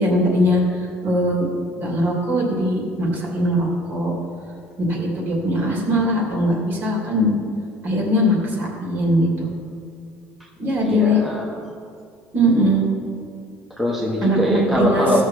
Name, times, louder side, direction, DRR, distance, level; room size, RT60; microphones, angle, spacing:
voice 1, 0.0-1.5 1.8-4.1 4.8-7.4 7.8-9.5 10.6-11.2 12.3-12.8 14.2-15.1, equal, 45° right, -1 dB, 2.8 m, -20 dB
voice 2, 10.8-11.7 13.8-15.2, left 1 dB, ahead, -4 dB, 1.3 m, -22 dB
16.0 x 6.6 x 5.0 m, 2.2 s
cardioid pair, 145°, 5 cm